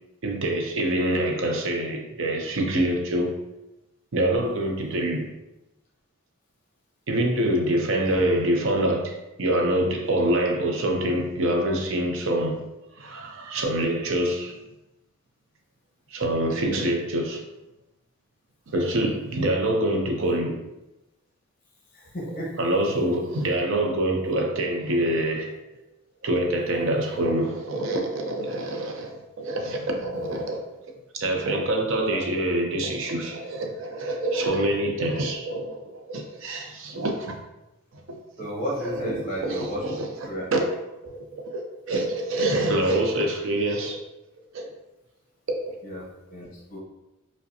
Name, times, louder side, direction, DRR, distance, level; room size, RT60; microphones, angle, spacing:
voice 1, 0.2-3.4 4.1-5.3 7.1-12.6 13.0-14.6 16.1-17.4 18.7-20.6 22.3-25.5 26.2-30.6 31.1-37.3 38.4-40.6 41.0-41.2 41.4-44.0 44.5-44.7 45.5-45.6, right 1 dB, 65° right, 0.5 m, -26 dB
voice 2, 21.9-22.5 30.0-30.4 32.1-32.2 38.4-39.8 40.2-40.4 45.8-46.8, equal, 40° left, 1.0 m, -33 dB
4.8 x 2.2 x 2.7 m
head